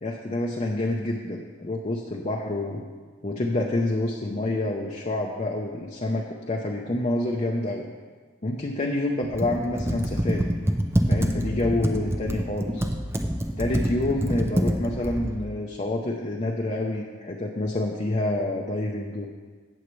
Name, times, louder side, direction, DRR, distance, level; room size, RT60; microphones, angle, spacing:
voice 1, 0.0-2.8 3.2-7.8 8.4-10.5 11.1-12.9 13.6-19.3, left 1 dB, 30° left, 0 dB, 0.7 m, -28 dB
Computer keyboard, 9.2-15.4, equal, 10° right, 0.5 m, -26 dB
16.5 x 7.2 x 3.2 m, 1.5 s
head